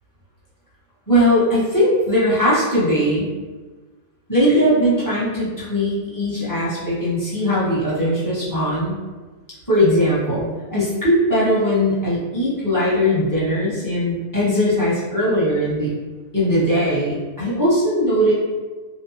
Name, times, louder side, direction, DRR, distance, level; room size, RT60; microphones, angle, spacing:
voice 1, 1.1-3.3 4.3-8.9 9.7-15.9 16.3-18.3, equal, 15° left, -11 dB, 0.7 m, -19 dB
2.7 x 2.1 x 2.6 m, 1.3 s
omnidirectional pair, 1.5 m